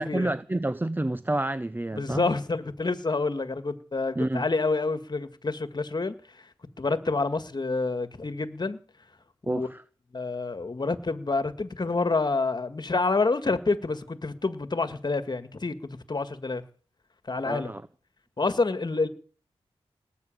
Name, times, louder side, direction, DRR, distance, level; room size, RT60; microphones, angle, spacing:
voice 1, 0.0-2.3 4.2-4.4 9.5-9.8 17.4-17.8, right 1 dB, 20° right, 0.8 m, -29 dB
voice 2, 2.0-6.1 6.8-8.8 9.5-9.7 10.1-15.7 16.1-16.6 17.3-17.7 18.4-19.1, left 3 dB, 40° left, 1.8 m, -28 dB
19.0 x 8.2 x 9.0 m
wide cardioid pair, 70°, 11 cm